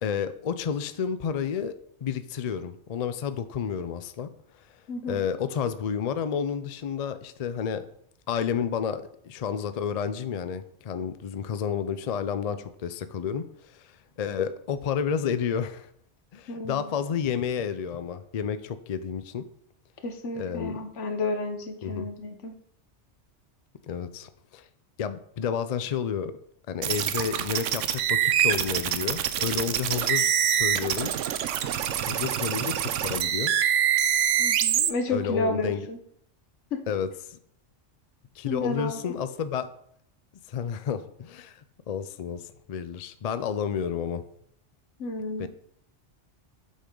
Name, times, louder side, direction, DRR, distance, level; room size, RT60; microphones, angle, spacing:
voice 1, 0.0-4.3 4.6-4.7 5.1-7.9 8.3-15.9 16.3-19.5 20.3-20.8 21.8-22.1 23.8-24.7 25.0-26.4 26.7-31.1 32.1-33.5 35.1-35.9 36.9-37.4 38.4-39.7 40.5-44.2 45.4-45.5, left 7 dB, 55° left, 12 dB, 0.4 m, -31 dB
voice 2, 4.9-5.2 16.5-16.9 20.0-22.5 34.4-36.0 36.7-36.8 38.4-39.2 45.0-45.5, left 2 dB, 75° left, 6 dB, 1.3 m, -31 dB
sound 1, 26.8-34.9, right 9 dB, 85° right, 1.0 m, -25 dB
8.2 x 6.4 x 3.8 m, 0.68 s
omnidirectional pair, 1.2 m